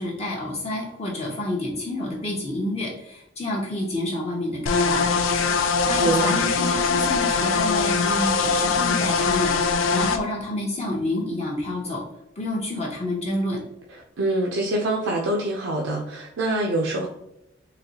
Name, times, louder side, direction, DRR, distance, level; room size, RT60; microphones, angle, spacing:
voice 1, 0.0-5.0 5.9-12.0 12.4-13.6, left 1 dB, 30° left, -2 dB, 0.6 m, -29 dB
sound 1, 4.7-10.2, left 5 dB, 85° left, 0.4 m, -22 dB
voice 2, 6.0-6.4 13.9-17.1, right 2 dB, 85° right, -1 dB, 0.5 m, -25 dB
4.0 x 3.1 x 2.8 m, 0.84 s
head